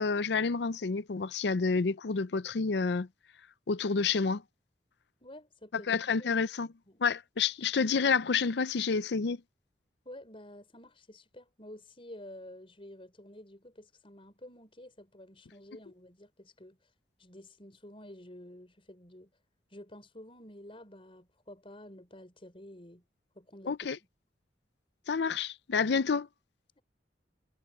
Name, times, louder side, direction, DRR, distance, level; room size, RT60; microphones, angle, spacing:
voice 1, 0.0-3.1 3.7-4.4 5.9-6.7 7.0-9.4 23.7-24.0 25.1-26.3, left 5 dB, 65° left, 0.5 m, -29 dB
voice 2, 5.2-5.9 6.2-6.3 6.9-7.0 10.1-16.8 17.2-19.3 19.7-23.0 23.4-23.8, left 1 dB, 30° left, 5.2 m, -50 dB
head